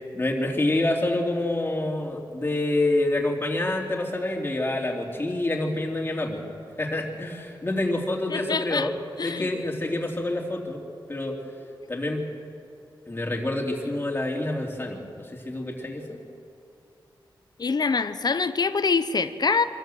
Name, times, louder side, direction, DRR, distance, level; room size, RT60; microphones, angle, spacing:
voice 1, 0.1-6.4 6.8-8.9 9.2-10.8 11.1-11.4 11.9-12.2 13.1-16.2, left 2 dB, 25° left, 0 dB, 3.2 m, -27 dB
voice 2, 8.3-8.9 9.2-9.5 17.6-19.6, left 4 dB, 50° left, 12 dB, 0.8 m, -25 dB
24.5 x 13.5 x 7.9 m, 2.5 s
cardioid pair, 70°, 9 cm